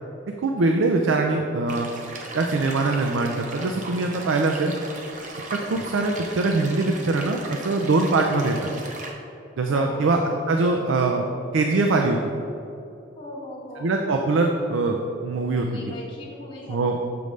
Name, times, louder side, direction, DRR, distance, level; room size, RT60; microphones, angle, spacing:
voice 1, 0.4-1.9 2.3-4.7 5.7-8.7 9.6-10.2 10.5-11.2 11.5-12.2 13.8-15.7 16.7-17.0, right 3 dB, 85° right, 2 dB, 0.4 m, -22 dB
sound 1, 1.7-9.1, right 2 dB, 40° right, 0.6 m, -37 dB
voice 2, 9.7-10.3 13.2-14.1 15.5-17.0, left 2 dB, 25° left, -5 dB, 0.8 m, -38 dB
6.8 x 3.2 x 5.0 m, 2.7 s
head